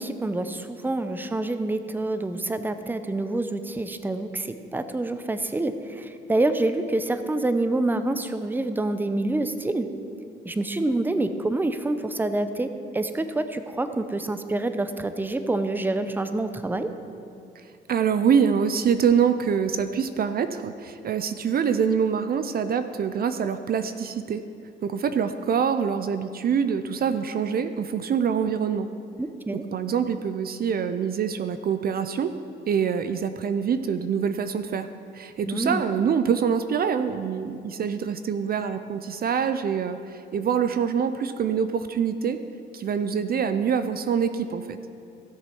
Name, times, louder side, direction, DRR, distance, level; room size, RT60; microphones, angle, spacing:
voice 1, 0.0-9.9 10.4-16.9 29.2-29.6 35.5-35.8, right 2 dB, 10° right, 9 dB, 0.6 m, -27 dB
voice 2, 17.9-24.4 24.8-28.9 29.5-32.3 32.7-34.9 35.1-42.4 42.7-44.8, right 7 dB, 50° right, 10 dB, 0.5 m, -25 dB
16.0 x 6.9 x 4.5 m, 2.5 s
cardioid pair, 90°, 20 cm